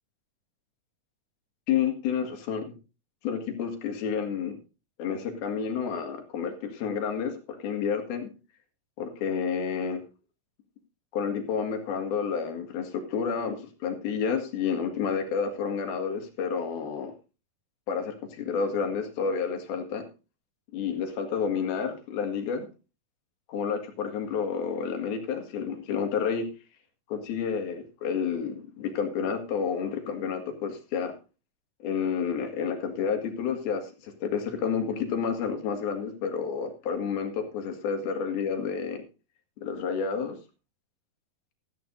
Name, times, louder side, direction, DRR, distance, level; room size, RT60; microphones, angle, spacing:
voice 1, 1.7-2.7 3.2-4.6 5.0-8.3 9.0-10.0 11.1-17.1 17.9-20.0 20.7-22.7 23.5-26.5 27.1-31.1 31.8-39.0 39.6-40.4, left 6 dB, 90° left, 5 dB, 3.8 m, -30 dB
15.5 x 14.0 x 2.6 m, 0.31 s
omnidirectional pair, 4.2 m